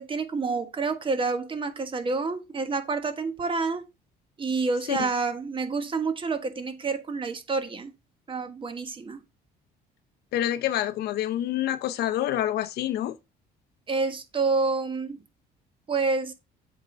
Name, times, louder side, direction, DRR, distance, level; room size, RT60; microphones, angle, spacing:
voice 1, 0.0-3.8 4.4-7.9 8.3-9.2 13.9-15.2 15.9-16.3, right 4 dB, 30° right, 1.4 m, -28 dB
voice 2, 10.3-13.1, left 12 dB, 70° left, 0.7 m, -27 dB
7.8 x 3.8 x 5.0 m
cardioid pair, 110°, 17 cm